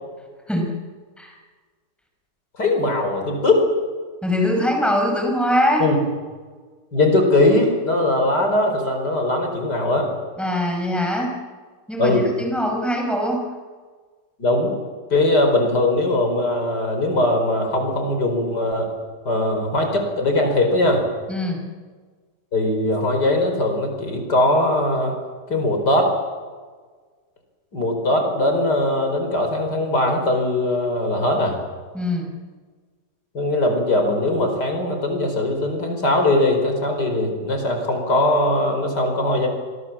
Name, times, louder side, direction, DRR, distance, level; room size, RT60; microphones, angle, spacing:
voice 1, 2.6-3.6 5.8-6.0 6.9-10.1 12.0-12.2 14.4-14.8 15.1-18.9 19.3-21.0 22.5-25.2 25.5-26.1 27.7-31.6 33.3-39.5, left 1 dB, 70° left, 4 dB, 5.3 m, -20 dB
voice 2, 4.2-5.9 10.4-11.3 11.9-13.5 21.3-21.6 31.9-32.3, left 1 dB, ahead, 2 dB, 5.5 m, -22 dB
28.5 x 23.0 x 7.5 m, 1.5 s
omnidirectional pair, 1.8 m